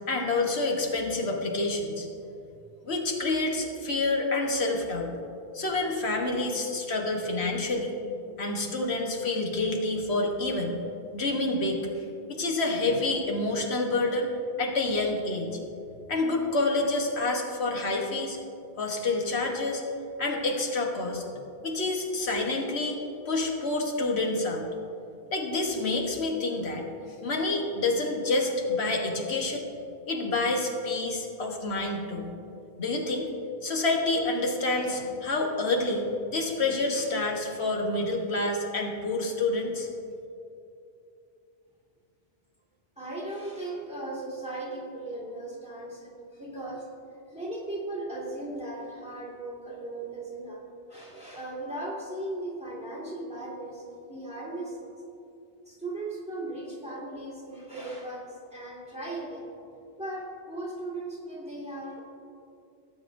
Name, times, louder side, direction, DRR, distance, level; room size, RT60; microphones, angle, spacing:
voice 1, 0.1-2.1 2.8-5.1 5.5-7.9 8.4-10.8 11.1-11.8 12.3-14.3 14.6-15.6 16.1-18.4 18.8-19.8 20.2-21.2 21.6-24.6 25.3-26.8 27.2-29.6 30.0-32.3 32.8-33.3 33.6-39.9, left 2 dB, 80° left, 1 dB, 1.4 m, -28 dB
voice 2, 43.0-46.9 47.3-50.6 50.9-54.9 55.7-59.5 60.0-62.0, right 2 dB, 5° right, -4 dB, 1.8 m, -37 dB
17.5 x 7.8 x 2.6 m, 2.6 s
omnidirectional pair, 1.1 m